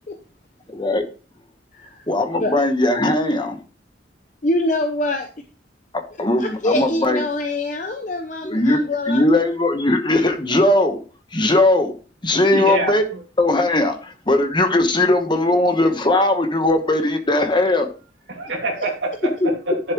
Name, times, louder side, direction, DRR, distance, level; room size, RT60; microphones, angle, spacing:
voice 1, 0.7-1.0 2.1-3.6 6.2-7.2 8.4-8.8 9.1-11.0 11.3-11.9 12.2-13.0 13.4-17.9 19.4-19.5, left 2 dB, 25° left, 6 dB, 1.1 m, -19 dB
voice 2, 1.7-2.1 2.4-2.5 4.4-5.3 6.4-9.4 18.8-18.9, left 1 dB, 45° left, 4 dB, 0.8 m, -24 dB
voice 3, 12.5-12.9 18.3-19.9, right 1 dB, 80° right, 1 dB, 2.3 m, -25 dB
10.5 x 7.0 x 3.1 m, 0.37 s
head